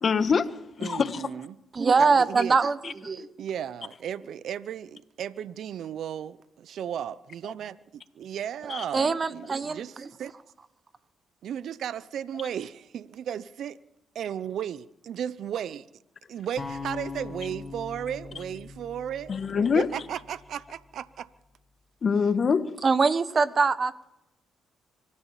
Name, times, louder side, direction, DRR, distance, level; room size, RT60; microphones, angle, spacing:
voice 1, 0.0-1.2 2.8-2.9 8.7-8.8 19.3-19.9 22.0-22.8, left 5 dB, 50° left, 1.5 m, -25 dB
voice 2, 0.8-1.6 2.0-2.6 3.4-7.7 8.2-10.3 11.4-13.8 14.1-15.9 16.3-21.3, right 9 dB, 70° right, 0.7 m, -35 dB
voice 3, 1.7-3.3 8.9-10.1 22.8-24.1, right 4 dB, 40° right, 1.2 m, -23 dB
sound 1, 16.6-20.7, left 4 dB, 30° left, 4.3 m, -41 dB
25.0 x 14.0 x 7.4 m
supercardioid pair, 65°, 0 cm